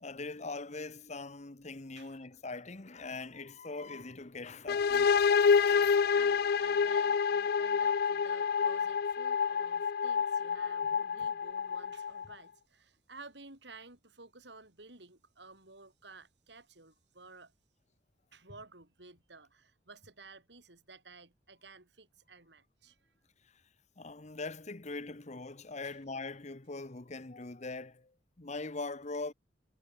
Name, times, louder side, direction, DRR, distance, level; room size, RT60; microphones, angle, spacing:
voice 1, 0.0-6.0 24.0-28.1 28.4-29.3, left 3 dB, 40° left, 1.2 m, -42 dB
sound 1, 4.7-12.3, left 6 dB, 55° left, 0.4 m, -28 dB
voice 2, 6.1-17.5 18.3-23.1 25.8-26.0, right 3 dB, 70° right, 5.3 m, -54 dB
head